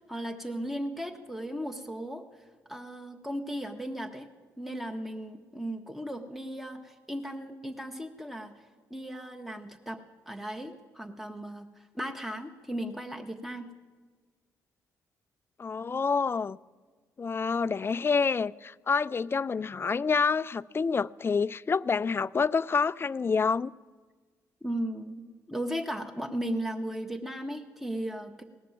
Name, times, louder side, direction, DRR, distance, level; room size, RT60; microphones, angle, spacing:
voice 1, 0.0-4.3 4.6-8.6 8.9-10.0 10.3-13.7 24.6-28.4, equal, ahead, 1.1 m, -36 dB
voice 2, 15.6-16.6 17.2-23.7, left 5 dB, 30° left, 0.3 m, -27 dB
18.0 x 6.7 x 9.0 m
hypercardioid pair, 45°, 8 cm